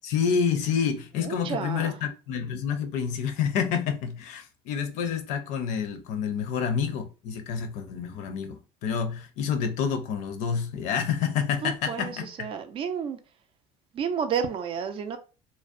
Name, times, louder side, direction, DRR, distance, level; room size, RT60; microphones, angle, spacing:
voice 1, 0.0-12.5, left 7 dB, 70° left, 0.5 m, -28 dB
voice 2, 1.2-2.0 11.6-13.2 13.9-15.2, right 7 dB, 45° right, 0.4 m, -31 dB
2.6 x 2.0 x 2.5 m
cardioid pair, 115°, 13 cm